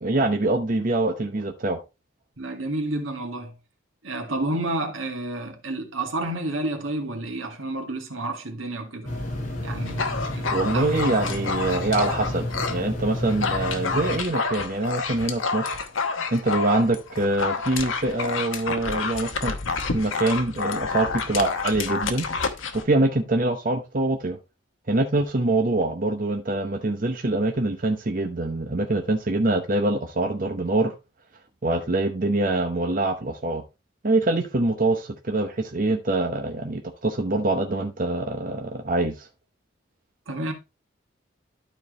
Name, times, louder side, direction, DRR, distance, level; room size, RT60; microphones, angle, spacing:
voice 1, 0.0-1.8 10.5-15.9 16.3-19.5 19.9-22.3 22.7-24.4 24.9-30.9 31.6-33.6 34.0-39.3, right 2 dB, 40° right, 0.8 m, -24 dB
voice 2, 2.4-3.6 4.0-9.1 9.6-10.5 10.7-11.0 40.3-40.5, right 2 dB, 80° right, 1.9 m, -30 dB
sound 1, 9.0-14.2, left 1 dB, 40° left, 3.1 m, -31 dB
Dog, 9.9-12.8 13.1-22.8, left 4 dB, 80° left, 1.1 m, -29 dB
12.0 x 4.6 x 3.1 m
head